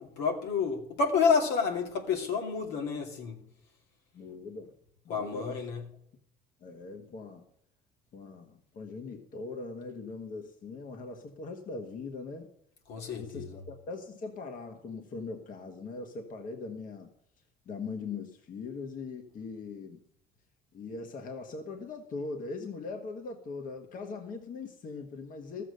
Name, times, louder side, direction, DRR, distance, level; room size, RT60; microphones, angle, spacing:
voice 1, 0.0-3.4 5.1-5.8 12.9-13.6, left 5 dB, 85° left, 2 dB, 2.5 m, -29 dB
voice 2, 4.1-4.7 5.0-5.7 6.6-7.4 8.1-12.5 13.0-17.1 17.6-20.0 20.7-25.6, left 4 dB, 55° left, 4 dB, 1.5 m, -41 dB
14.0 x 7.6 x 6.5 m, 0.75 s
cardioid pair, 110°, 17 cm